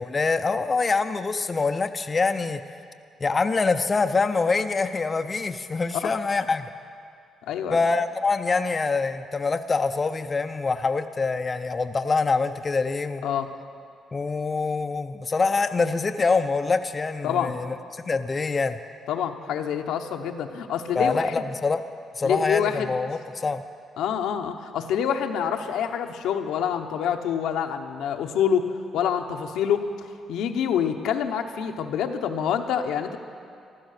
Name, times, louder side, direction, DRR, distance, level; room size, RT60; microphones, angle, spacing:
voice 1, 0.0-2.6 3.2-6.7 7.7-13.2 14.1-18.8 20.9-21.8 22.1-23.6, left 4 dB, 30° left, 7 dB, 0.5 m, -25 dB
voice 2, 7.4-7.8 13.2-13.5 17.2-17.6 19.1-21.3 22.2-23.0 24.0-33.2, left 8 dB, 85° left, 5 dB, 0.9 m, -26 dB
15.0 x 12.5 x 6.6 m, 2.4 s
cardioid pair, 90°, 0 cm